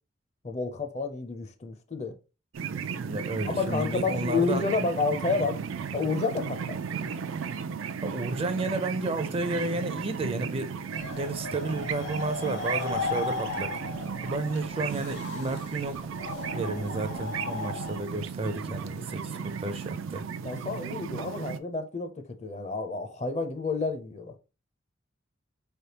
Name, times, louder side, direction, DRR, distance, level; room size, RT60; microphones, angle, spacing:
voice 1, 0.4-2.2 3.4-5.6 5.9-6.8 20.4-24.4, left 4 dB, 35° left, 0.5 m, -30 dB
sound 1, 2.5-21.6, right 6 dB, 85° right, 0.4 m, -35 dB
voice 2, 3.0-4.8 8.0-10.7 11.1-13.7 14.2-16.1 16.5-20.2, right 2 dB, 30° right, 0.4 m, -32 dB
sound 2, 10.9-18.0, left 3 dB, 85° left, 1.3 m, -36 dB
4.3 x 3.4 x 2.8 m
head